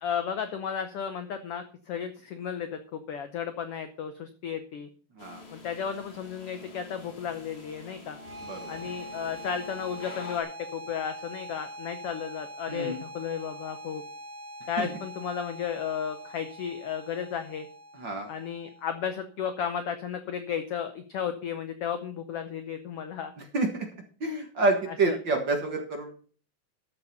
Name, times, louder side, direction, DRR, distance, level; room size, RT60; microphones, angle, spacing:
voice 1, 0.0-4.9 5.5-8.2 8.7-14.0 14.7-17.7 18.3-23.3 25.1-25.2, left 7 dB, 80° left, 9 dB, 1.3 m, -34 dB
sound 1, 5.2-10.4, left 3 dB, 25° left, 1.5 m, -47 dB
sound 2, 8.1-19.1, equal, 75° right, 2.8 m, -44 dB
voice 2, 12.7-13.0 14.8-14.9 17.9-18.3 23.5-23.9 24.2-26.1, right 3 dB, 45° right, 3 dB, 1.7 m, -28 dB
13.0 x 7.1 x 5.4 m, 0.42 s
omnidirectional pair, 3.8 m